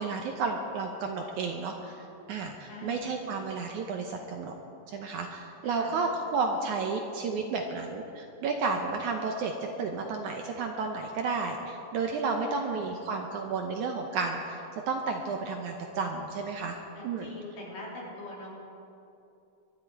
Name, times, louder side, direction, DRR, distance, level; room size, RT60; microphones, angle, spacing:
voice 1, 0.0-4.5 4.9-16.8 17.0-17.3, right 4 dB, 70° right, 3 dB, 2.0 m, -32 dB
voice 2, 2.7-3.1 5.6-5.9 12.4-12.8 17.0-18.6, left 2 dB, 65° left, -4 dB, 4.8 m, -43 dB
22.5 x 12.5 x 4.7 m, 2.8 s
omnidirectional pair, 4.2 m